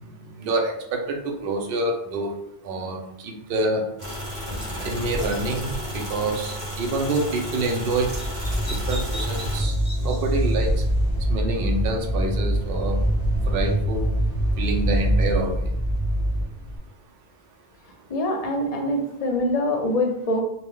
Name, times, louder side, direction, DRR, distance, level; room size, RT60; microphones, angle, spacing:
voice 1, 0.0-2.3 2.6-3.8 4.8-8.1 8.6-9.7 10.0-10.8 11.3-13.0 13.5-14.1 14.6-15.6, right 2 dB, 70° right, 1 dB, 0.8 m, -27 dB
sound 1, 4.0-9.6, equal, 40° right, 1.1 m, -32 dB
Bird vocalization bird call bird song, 4.7-11.0, equal, 5° right, 1.3 m, -40 dB
sound 2, 8.4-16.8, equal, 20° left, 0.9 m, -24 dB
voice 2, 18.1-20.4, left 1 dB, 45° left, 2 dB, 0.6 m, -24 dB
2.8 x 2.2 x 3.4 m, 0.77 s
omnidirectional pair, 1.0 m